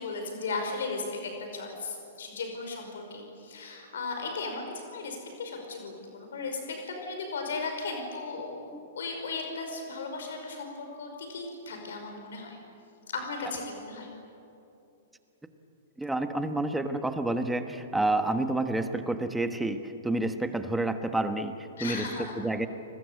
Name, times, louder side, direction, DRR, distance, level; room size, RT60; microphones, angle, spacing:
voice 1, 0.0-4.6 4.9-6.6 6.9-12.6 13.1-14.1 21.8-22.4, left 3 dB, 85° left, 4 dB, 5.3 m, -36 dB
voice 2, 16.0-22.7, right 2 dB, 5° right, 8 dB, 1.2 m, -29 dB
29.5 x 20.0 x 8.3 m, 2.8 s
hypercardioid pair, 155°, 0 cm